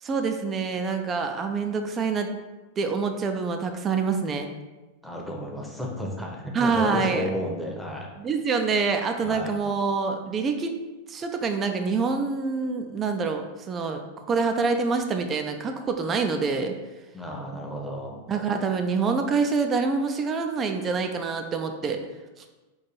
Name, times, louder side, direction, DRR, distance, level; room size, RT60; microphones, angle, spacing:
voice 1, 0.0-2.3 2.8-4.5 6.5-7.3 8.2-10.7 11.1-14.0 14.3-16.7 18.3-22.0, right 4 dB, 25° right, 6 dB, 0.4 m, -26 dB
voice 2, 5.0-8.1 9.2-9.5 17.1-18.2, left 1 dB, ahead, -2 dB, 0.8 m, -32 dB
3.8 x 2.6 x 4.3 m, 1.2 s
figure-of-eight pair, 90°, 0 cm